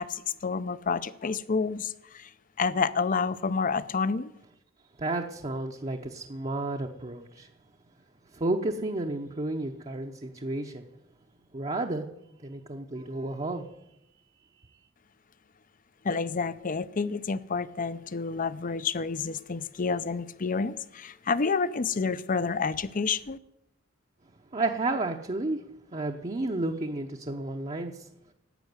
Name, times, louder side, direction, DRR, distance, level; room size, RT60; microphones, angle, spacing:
voice 1, 0.0-1.9 2.6-4.3 16.0-23.4, left 5 dB, 45° left, 16 dB, 0.6 m, -29 dB
voice 2, 5.0-7.5 8.3-10.8 11.5-12.0 12.4-13.6 24.5-25.6 25.9-28.1, right 2 dB, 30° right, 2 dB, 0.8 m, -31 dB
12.0 x 8.3 x 9.5 m, 0.86 s
head